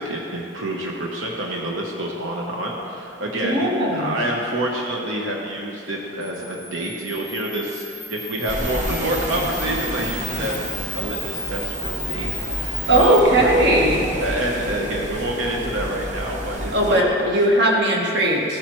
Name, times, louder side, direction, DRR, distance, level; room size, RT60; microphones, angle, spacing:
voice 1, 0.0-13.5 14.2-17.3, right 1 dB, 85° right, -1 dB, 1.0 m, -28 dB
voice 2, 3.4-4.2 12.9-14.0 16.7-18.6, right 1 dB, 55° right, -1 dB, 1.4 m, -18 dB
Camera, 6.2-13.2, left 1 dB, ahead, 0.3 m, -34 dB
sound 1, 8.5-17.0, equal, 40° right, 1.0 m, -30 dB
15.5 x 8.7 x 3.1 m, 2.7 s
head